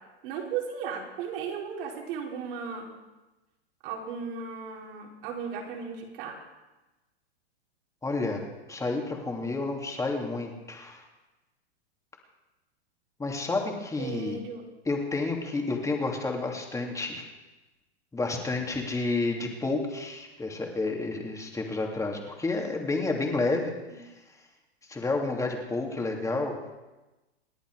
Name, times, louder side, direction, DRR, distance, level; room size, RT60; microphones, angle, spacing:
voice 1, 0.2-2.9 3.8-6.4 14.0-14.6 18.5-18.6 23.9-24.0, right 6 dB, 55° right, 0 dB, 4.5 m, -36 dB
voice 2, 8.0-8.4 8.7-11.0 13.2-14.4 14.8-17.3 18.1-24.1 24.9-26.6, left 3 dB, 10° left, 1 dB, 2.7 m, -30 dB
28.0 x 10.0 x 4.8 m, 1.1 s
hypercardioid pair, 125°, 33 cm